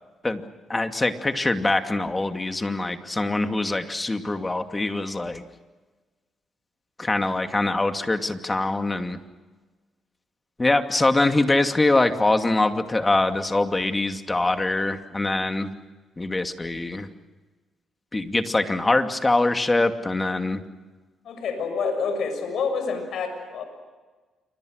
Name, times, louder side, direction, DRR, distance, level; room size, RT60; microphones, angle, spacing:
voice 1, 0.7-5.4 7.0-9.2 10.6-15.7 16.2-17.1 18.1-20.6, left 2 dB, 20° left, 7 dB, 2.4 m, -23 dB
voice 2, 21.2-23.6, left 5 dB, 70° left, 6 dB, 6.7 m, -28 dB
28.0 x 25.0 x 6.6 m, 1.3 s
supercardioid pair, 70°, 0 cm